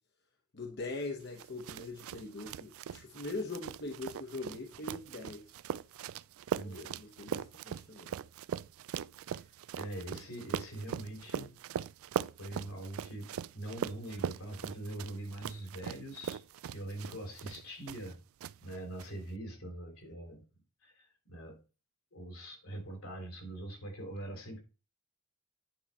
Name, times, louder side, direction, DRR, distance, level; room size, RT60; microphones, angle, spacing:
voice 1, 0.5-5.5 6.5-8.2, left 2 dB, 50° left, 0.9 m, -42 dB
sound 1, 1.4-18.1 18.4-19.1, right 8 dB, 70° right, 0.3 m, -40 dB
voice 2, 6.5-7.0 9.3-9.5 9.7-11.6 12.4-16.4 16.7-18.2 18.6-20.4 20.8-21.6 22.1-24.6, right 1 dB, 85° left, 3.4 m, -43 dB
9.6 x 4.8 x 4.3 m
head